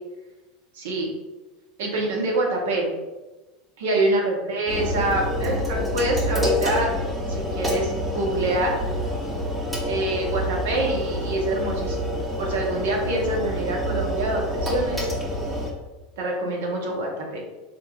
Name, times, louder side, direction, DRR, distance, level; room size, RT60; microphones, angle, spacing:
voice 1, 0.7-1.1 1.8-2.9 3.8-6.9 7.3-8.7 9.8-15.1 16.2-17.4, right 2 dB, 70° right, -1 dB, 0.8 m, -26 dB
sound 1, 4.7-15.7, left 1 dB, 15° right, 0.9 m, -27 dB
3.8 x 2.6 x 2.3 m, 1.1 s
hypercardioid pair, 85°, 0 cm